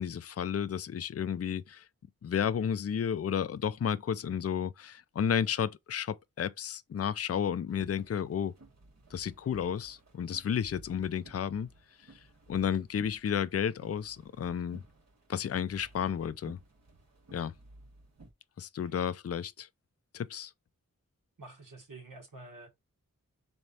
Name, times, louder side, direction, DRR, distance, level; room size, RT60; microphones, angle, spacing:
voice 1, 0.0-1.8 2.2-8.5 9.1-11.7 12.5-14.8 15.3-16.6 17.3-17.5 18.6-19.7 20.1-20.5, left 8 dB, 45° left, 0.4 m, -32 dB
sound 1, 7.7-18.3, right 2 dB, 55° right, 1.4 m, -57 dB
voice 2, 21.4-22.7, right 2 dB, 75° right, 1.7 m, -49 dB
3.6 x 3.3 x 4.1 m
wide cardioid pair, 60°, 33 cm